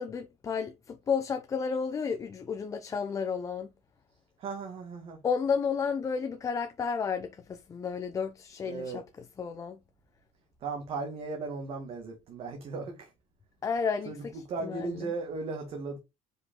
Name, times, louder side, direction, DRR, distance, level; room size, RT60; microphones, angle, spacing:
voice 1, 0.0-3.7 5.2-9.0 9.4-9.8 13.6-15.0, left 6 dB, 25° left, 0.7 m, -32 dB
voice 2, 4.4-5.2 8.6-9.0 10.6-13.1 14.1-16.0, right 3 dB, 45° right, 2.0 m, -36 dB
5.9 x 5.2 x 3.7 m
cardioid pair, 155°, 13 cm